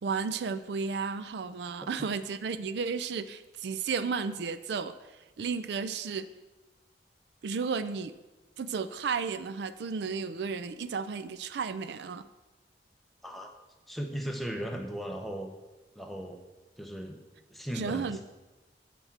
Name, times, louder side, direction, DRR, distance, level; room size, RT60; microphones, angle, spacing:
voice 1, 0.0-6.3 7.4-8.1 8.6-12.3 17.7-18.2, right 5 dB, 75° right, 12 dB, 0.4 m, -33 dB
voice 2, 13.9-15.5 16.0-16.4 16.8-17.2 17.5-18.2, equal, ahead, 3 dB, 0.8 m, -37 dB
8.0 x 4.6 x 7.3 m, 1.1 s
head